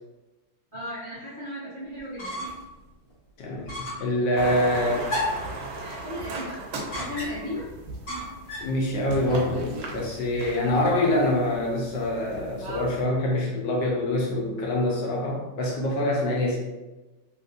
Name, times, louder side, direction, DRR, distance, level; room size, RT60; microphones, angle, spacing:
voice 1, 0.7-2.5 4.7-5.1 5.4-7.7, left 1 dB, 40° right, -12 dB, 0.8 m, -37 dB
sound 1, 2.0-2.7 3.0-3.1 3.7-4.1 5.1-5.5 6.9-7.5 8.1-8.8, left 1 dB, 55° left, 1.3 m, -32 dB
voice 2, 3.4-5.1 5.6-5.7 8.6-16.6, left 1 dB, 70° left, -2 dB, 1.3 m, -25 dB
sound 2, 4.4-13.0, right 2 dB, 85° right, 1.6 m, -37 dB
3.4 x 2.9 x 2.4 m, 1.1 s
omnidirectional pair, 2.1 m